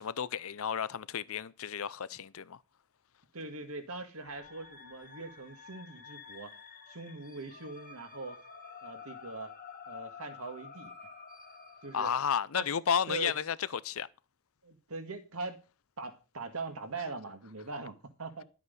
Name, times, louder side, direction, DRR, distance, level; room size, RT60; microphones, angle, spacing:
voice 1, 0.0-2.6 11.9-14.1, left 7 dB, 65° left, 0.6 m, -32 dB
voice 2, 3.3-6.6 6.9-8.4 8.8-9.5 9.9-10.9 11.8-12.1 12.5-12.7 13.1-13.3 14.6-15.6 16.0-18.4, right 3 dB, 75° right, 1.9 m, -41 dB
sound 1, 4.2-12.3, left 6 dB, 40° left, 1.6 m, -50 dB
11.5 x 8.3 x 5.3 m
head